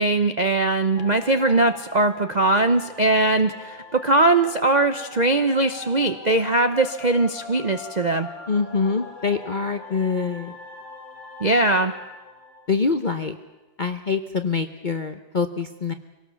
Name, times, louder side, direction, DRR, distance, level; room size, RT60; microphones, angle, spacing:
voice 1, 0.0-8.3 11.4-11.9, right 2 dB, 80° right, 9 dB, 0.4 m, -20 dB
sound 1, 1.0-13.5, left 3 dB, 75° left, 3.3 m, -42 dB
voice 2, 8.5-10.6 12.7-13.4 13.8-15.9, left 4 dB, 45° left, 8 dB, 0.6 m, -25 dB
25.0 x 18.0 x 7.0 m, 1.1 s
omnidirectional pair, 2.1 m